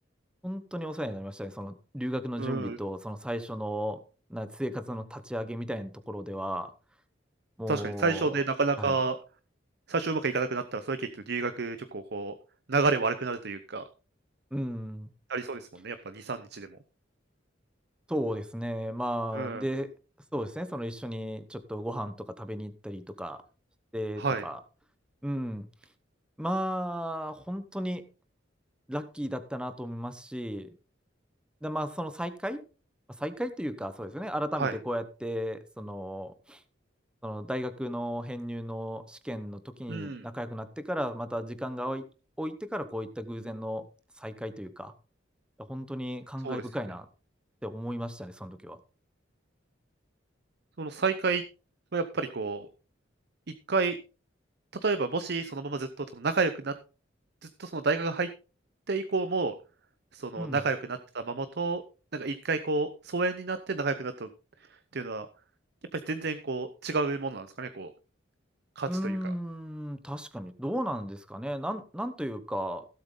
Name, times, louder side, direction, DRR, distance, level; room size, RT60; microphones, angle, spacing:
voice 1, 0.4-4.0 4.3-6.7 7.6-8.4 8.8-9.0 14.5-15.1 18.1-19.9 20.3-23.4 23.9-24.6 25.2-25.7 26.4-28.1 28.9-30.7 31.6-32.6 33.2-36.6 37.2-42.0 42.4-43.9 44.2-44.9 45.6-47.1 47.6-48.8 60.4-60.6 68.9-72.9, equal, 5° right, 11 dB, 0.9 m, -35 dB
voice 2, 2.4-2.8 7.7-9.2 9.9-12.4 12.7-13.8 15.3-16.7 19.3-19.6 24.2-24.4 34.6-34.7 39.9-40.2 46.4-46.6 50.8-51.4 51.9-52.7 53.7-54.0 54.8-56.7 57.6-58.3 58.9-59.6 60.1-61.8 62.1-64.3 64.9-65.3 65.9-67.9 68.8-69.2, right 3 dB, 55° right, 11 dB, 0.8 m, -30 dB
16.0 x 7.9 x 3.8 m, 0.35 s
head